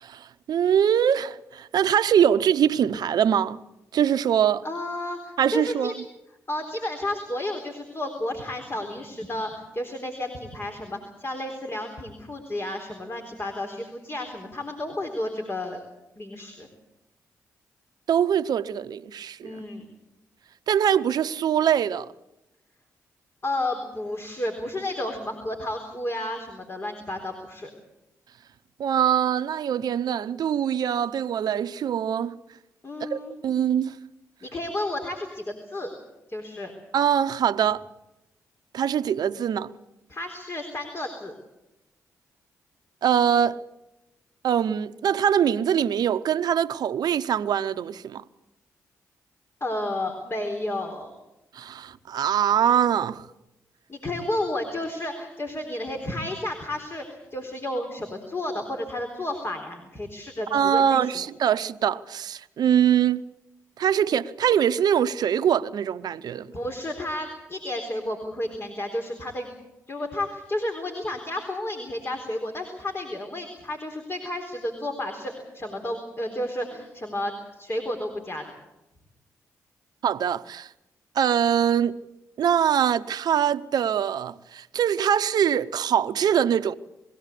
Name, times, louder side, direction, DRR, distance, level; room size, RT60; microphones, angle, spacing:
voice 1, 0.0-3.6 3.9-4.6 5.4-5.9 18.1-19.6 20.7-22.1 28.8-32.4 33.0-33.9 36.9-37.8 38.7-39.7 43.0-43.6 44.4-48.2 51.5-53.2 60.5-63.2 63.8-66.5 80.0-80.7 81.1-82.0 82.4-86.7, right 9 dB, 70° right, 0.9 m, -23 dB
voice 2, 4.6-5.9 6.5-15.8 16.2-16.7 19.4-19.9 23.4-27.7 32.8-33.3 34.4-35.9 36.3-36.7 40.1-41.3 49.6-51.1 53.9-61.3 66.5-69.5 69.9-78.4, left 1 dB, 35° left, 3.9 m, -32 dB
22.0 x 16.5 x 8.4 m
supercardioid pair, 45°, 7 cm